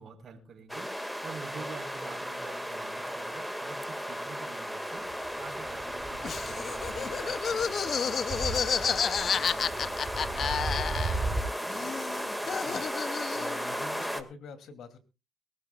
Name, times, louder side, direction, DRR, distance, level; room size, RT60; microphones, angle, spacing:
voice 1, 0.0-11.6, right 5 dB, 55° right, 4 dB, 4.3 m, -49 dB
sound 1, 0.7-14.2, equal, ahead, 2.0 m, -35 dB
sound 2, 5.0-11.4, right 3 dB, 35° right, 5.0 m, -37 dB
Laughter, 6.2-11.4 11.7-13.6, left 7 dB, 50° left, 0.7 m, -31 dB
voice 2, 12.4-12.9 13.3-15.0, left 5 dB, 75° left, 9 dB, 2.8 m, -46 dB
22.5 x 14.0 x 2.4 m, 0.31 s
cardioid pair, 90°, 0 cm